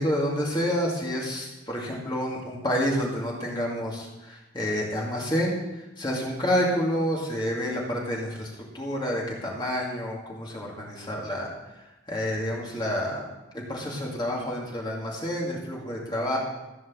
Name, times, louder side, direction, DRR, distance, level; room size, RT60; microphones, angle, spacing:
voice 1, 0.0-5.6 6.0-8.5 8.7-11.5 12.1-13.2 13.5-16.4, equal, 20° left, -3 dB, 2.3 m, -28 dB
15.0 x 5.3 x 7.4 m, 1.0 s
head